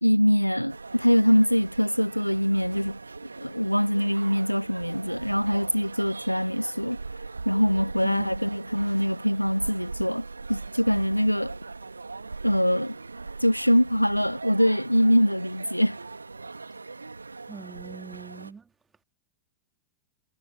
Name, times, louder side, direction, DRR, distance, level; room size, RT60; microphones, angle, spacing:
voice 1, 0.0-3.0 3.4-7.0 7.4-11.6 12.4-13.0 13.4-16.0, equal, 90° left, 0.8 m, -23 dB
sound 1, 0.7-18.5, right 3 dB, 80° right, 2.3 m, -40 dB
voice 2, 17.5-18.6, right 5 dB, 15° right, 2.1 m, -42 dB
figure-of-eight pair, 90°, 0 cm